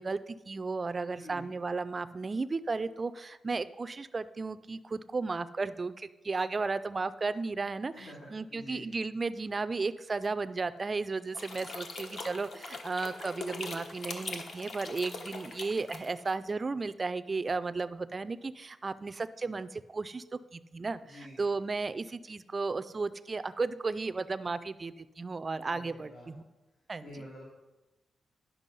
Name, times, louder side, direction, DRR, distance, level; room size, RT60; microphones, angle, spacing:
voice 1, 0.0-20.2 20.5-26.4 26.9-27.1, right 3 dB, 30° right, 13 dB, 0.4 m, -34 dB
voice 2, 1.1-1.5 7.9-8.9 21.0-21.4 25.7-26.3 27.0-27.4, left 1 dB, 80° left, -4 dB, 2.2 m, -48 dB
sound 1, 11.3-16.3, left 3 dB, 60° left, 1.0 m, -42 dB
10.5 x 5.8 x 5.4 m, 1.1 s
wide cardioid pair, 120°, 0 cm